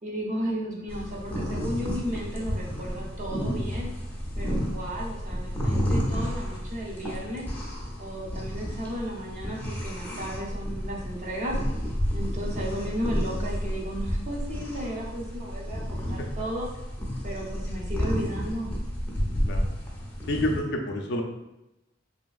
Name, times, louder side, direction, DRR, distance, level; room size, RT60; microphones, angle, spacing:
voice 1, 0.0-3.9 4.4-7.5 8.0-11.6 12.1-16.7 17.2-18.7, equal, 40° right, -3 dB, 0.7 m, -34 dB
sound 1, 0.9-20.6, equal, 10° left, 0.6 m, -31 dB
voice 2, 20.3-21.2, left 1 dB, 65° left, 2 dB, 0.4 m, -28 dB
3.2 x 2.8 x 2.3 m, 0.94 s
head